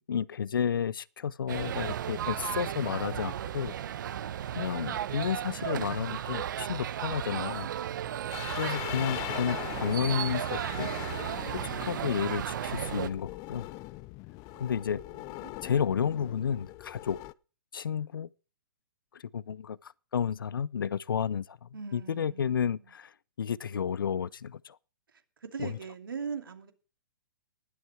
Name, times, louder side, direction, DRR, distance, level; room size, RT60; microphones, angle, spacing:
voice 1, 0.1-3.7 4.5-7.7 8.5-10.9 11.5-13.7 14.6-15.0 15.6-17.2 17.7-18.3 19.1-23.1 23.4-24.8 25.6-25.8, left 7 dB, 80° left, 0.6 m, -31 dB
sound 1, 1.5-13.1, right 10 dB, 65° right, 1.0 m, -34 dB
sound 2, 8.3-17.3, left 20 dB, 30° left, 0.6 m, -41 dB
voice 2, 14.5-15.5 21.7-22.8 25.4-26.7, right 6 dB, 85° right, 2.7 m, -41 dB
19.5 x 8.3 x 4.7 m
hypercardioid pair, 125°, 11 cm